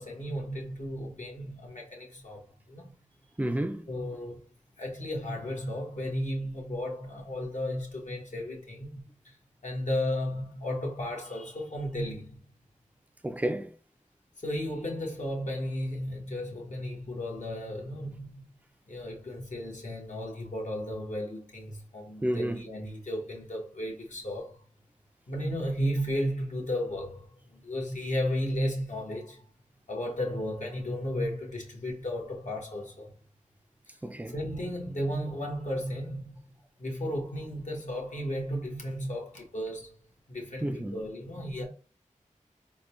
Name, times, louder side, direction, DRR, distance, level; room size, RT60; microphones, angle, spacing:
voice 1, 0.0-2.9 3.9-4.4 4.8-9.4 9.6-12.4 14.4-18.5 18.9-24.6 25.3-29.5 29.9-33.1 33.9-34.0 34.3-36.4 36.8-39.9 40.3-41.6, equal, 65° left, 1.1 m, -34 dB
voice 2, 3.4-3.9 13.2-13.7 22.2-22.6 34.0-34.3 40.6-41.0, right 1 dB, 10° right, 0.4 m, -30 dB
3.7 x 2.2 x 3.0 m
wide cardioid pair, 85°, 13 cm